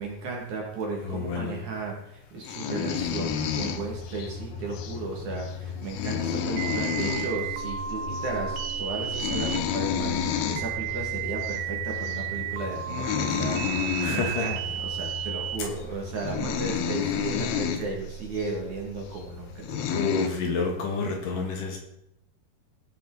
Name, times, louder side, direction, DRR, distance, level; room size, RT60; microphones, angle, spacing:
voice 1, 0.0-20.1, right 3 dB, 55° right, 3.1 m, -35 dB
voice 2, 1.0-1.6 14.0-14.5 15.6-15.7 19.9-21.8, left 4 dB, 70° left, 2.5 m, -29 dB
sound 1, 2.4-4.3 4.7-5.0 5.4-5.5 5.8-7.3 7.6-7.7 8.0-8.3 8.6-8.8 9.1-10.6 11.4-11.6 12.0-12.3 12.8-14.5 15.0-15.2 15.8-15.9 16.2-17.8 18.4-18.5 19.2-19.3 19.6-20.3, left 8 dB, 85° left, 2.8 m, -30 dB
sound 2, 3.0-20.7, left 2 dB, 50° left, 5.4 m, -39 dB
sound 3, 6.6-15.6, right 9 dB, 80° right, 2.6 m, -33 dB
17.0 x 5.9 x 3.9 m
omnidirectional pair, 4.4 m